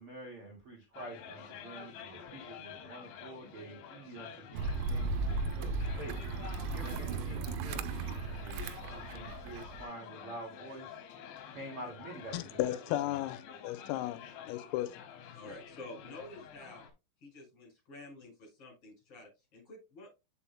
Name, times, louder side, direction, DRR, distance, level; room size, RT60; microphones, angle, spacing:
voice 1, 0.0-6.2 6.7-11.0 11.5-13.2, right 1 dB, 70° right, 1.3 m, -47 dB
sound 1, 0.9-16.9, left 8 dB, 70° left, 3.5 m, -49 dB
sound 2, 4.5-9.8, right 3 dB, 90° right, 3.4 m, -36 dB
voice 2, 12.3-15.0, left 14 dB, 90° left, 3.4 m, -35 dB
voice 3, 15.3-16.9 17.2-20.1, left 2 dB, 30° left, 5.3 m, -49 dB
8.4 x 7.6 x 2.2 m
omnidirectional pair, 6.0 m